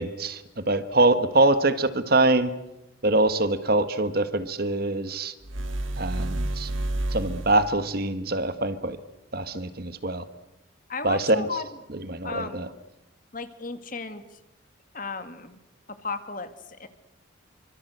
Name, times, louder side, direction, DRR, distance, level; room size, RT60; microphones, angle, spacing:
voice 1, 0.0-2.5 3.0-5.3 6.0-6.7 7.1-9.0 9.3-10.3 11.0-11.5 11.9-12.7, right 2 dB, 50° right, 12 dB, 1.5 m, -24 dB
sound 1, 5.4-7.8, right 1 dB, 80° right, 1.7 m, -30 dB
voice 2, 10.9-11.7 12.2-12.7 13.3-14.4 14.9-15.6 15.9-16.9, left 4 dB, 40° left, 10 dB, 2.0 m, -35 dB
26.0 x 25.0 x 8.0 m, 0.93 s
head